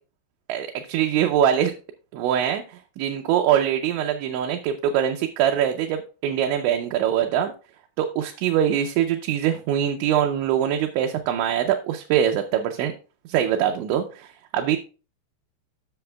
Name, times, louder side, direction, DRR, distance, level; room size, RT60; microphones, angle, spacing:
voice 1, 0.5-1.7 2.1-7.5 8.0-12.9 13.3-14.3 14.5-14.8, right 9 dB, 80° right, 3 dB, 2.7 m, -23 dB
13.5 x 6.2 x 2.2 m, 0.34 s
omnidirectional pair, 5.7 m